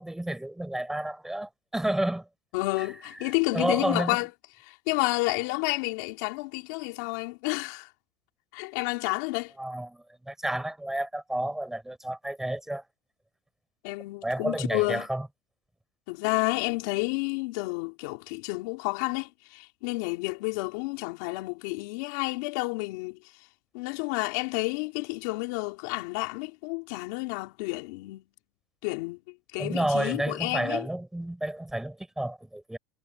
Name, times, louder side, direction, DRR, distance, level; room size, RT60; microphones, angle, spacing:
voice 1, 0.0-2.3 2.8-2.9 3.5-4.2 9.6-12.8 14.2-15.3 29.6-32.8, right 1 dB, 5° right, 5.5 m, -31 dB
voice 2, 2.5-4.3 4.6-7.9 8.5-9.5 13.8-15.1 16.1-23.2 23.7-28.2 28.8-29.2 29.5-30.9, left 25 dB, 75° left, 4.3 m, -30 dB
supercardioid pair, 135°, 9 cm